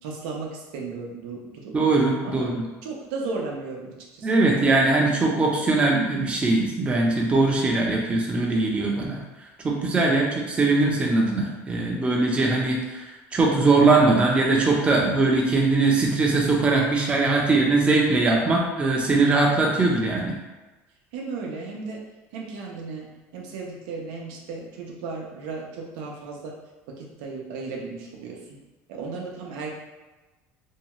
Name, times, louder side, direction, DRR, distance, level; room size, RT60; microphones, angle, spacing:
voice 1, 0.0-1.7 2.2-2.5 2.8-4.8 10.1-10.3 21.1-22.0 22.3-26.5 27.0-28.4 28.9-29.7, right 4 dB, 90° right, -1 dB, 0.6 m, -35 dB
voice 2, 1.7-2.5 4.2-9.2 9.6-13.0 13.3-20.3, right 3 dB, 20° right, -2 dB, 0.5 m, -21 dB
2.7 x 2.3 x 2.9 m, 1.2 s
cardioid pair, 135°, 6 cm